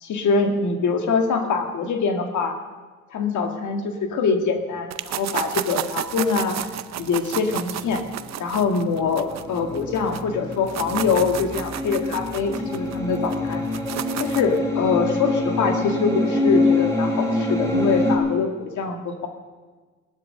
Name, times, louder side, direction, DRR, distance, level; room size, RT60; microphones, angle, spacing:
voice 1, 0.0-2.6 3.1-6.6 7.0-8.0 8.4-13.6 14.2-19.3, left 4 dB, 75° left, 4 dB, 1.9 m, -24 dB
sound 1, 4.9-10.2 10.5-14.6, right 11 dB, 60° right, 0.7 m, -32 dB
sound 2, 7.8-18.2, left 2 dB, 10° left, 3.9 m, -25 dB
17.0 x 11.5 x 6.6 m, 1.4 s
cardioid pair, 90°, 30 cm